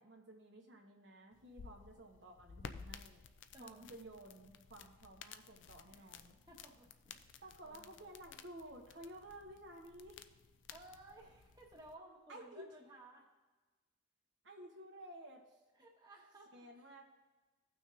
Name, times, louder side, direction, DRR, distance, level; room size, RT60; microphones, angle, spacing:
voice 1, 0.0-3.2 3.6-6.4 7.4-10.2 12.3-12.7 14.4-15.6 16.5-17.0, right 1 dB, 60° right, 0 dB, 1.1 m, -54 dB
sound 1, 1.3-11.9, left 6 dB, 65° left, 0.4 m, -55 dB
voice 2, 3.5-3.9 5.9-6.1 6.5-7.9 10.7-13.3 15.8-16.7, right 1 dB, 20° right, -2 dB, 1.3 m, -58 dB
16.0 x 6.1 x 2.6 m, 1.2 s
head